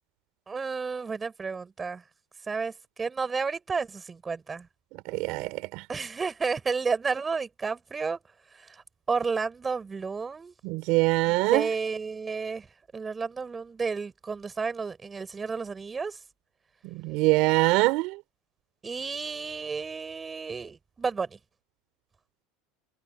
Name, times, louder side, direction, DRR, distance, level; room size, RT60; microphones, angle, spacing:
voice 1, 0.5-2.0 2.5-4.7 5.9-8.2 8.5-10.5 11.3-12.7 12.9-16.2 18.8-21.4, right 5 dB, 20° right, 5.9 m, -32 dB
voice 2, 5.0-5.8 10.6-11.7 16.8-18.2, right 23 dB, 60° right, 4.5 m, -24 dB
supercardioid pair, 130°, 0 cm